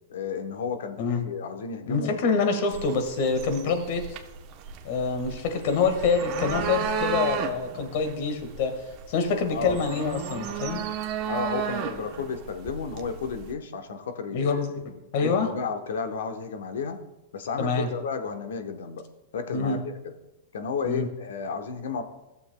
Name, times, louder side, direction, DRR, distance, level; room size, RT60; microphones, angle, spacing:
voice 1, 0.1-2.2 9.5-9.8 11.3-14.6 15.2-17.0 17.3-19.0 19.3-20.1 20.5-22.0, left 5 dB, 75° left, 7 dB, 1.0 m, -32 dB
voice 2, 1.9-4.0 4.8-8.7 9.1-10.8 14.3-15.5 17.6-17.9 19.5-19.8 20.8-21.1, left 4 dB, 55° left, 6 dB, 1.5 m, -26 dB
sound 1, 2.7-13.5, right 7 dB, 40° right, 0.8 m, -34 dB
14.5 x 7.0 x 2.2 m, 0.98 s
hypercardioid pair, 135°, 0 cm